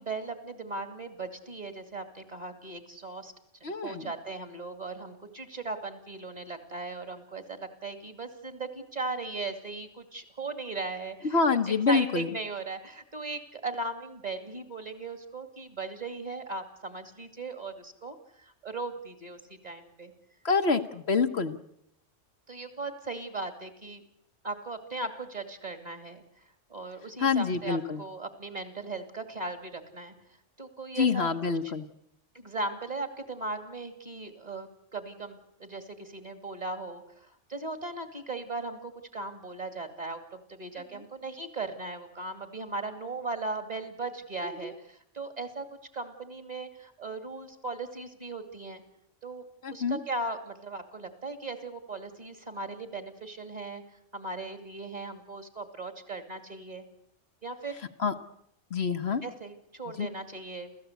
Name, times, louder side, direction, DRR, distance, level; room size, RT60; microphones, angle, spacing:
voice 1, 0.0-3.3 3.6-11.4 11.9-18.2 18.4-20.1 20.7-20.8 22.5-24.0 24.4-26.2 26.7-30.1 30.6-31.3 32.3-45.6 45.9-48.8 49.2-49.4 49.7-53.8 54.1-56.9 57.4-57.8 59.2-60.7, right 3 dB, 35° right, 8 dB, 2.5 m, -38 dB
voice 2, 3.6-4.1 11.2-12.3 20.4-21.6 27.2-28.0 31.0-31.9 40.9-41.0 44.4-44.7 49.6-50.0 58.0-58.1 58.7-59.2 60.0-60.1, left 5 dB, 55° left, 7 dB, 1.3 m, -27 dB
29.5 x 14.5 x 8.2 m, 0.76 s
omnidirectional pair, 1.3 m